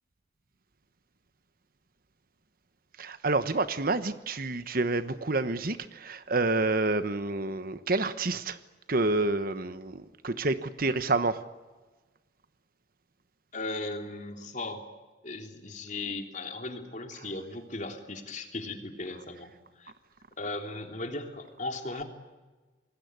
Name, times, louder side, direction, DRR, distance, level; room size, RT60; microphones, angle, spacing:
voice 1, 3.0-8.6 8.9-11.4, right 2 dB, 55° right, 11 dB, 1.2 m, -28 dB
voice 2, 13.5-14.8 15.2-19.9 20.4-22.0, left 2 dB, 45° left, 4 dB, 3.2 m, -37 dB
27.0 x 20.5 x 9.6 m, 1.2 s
head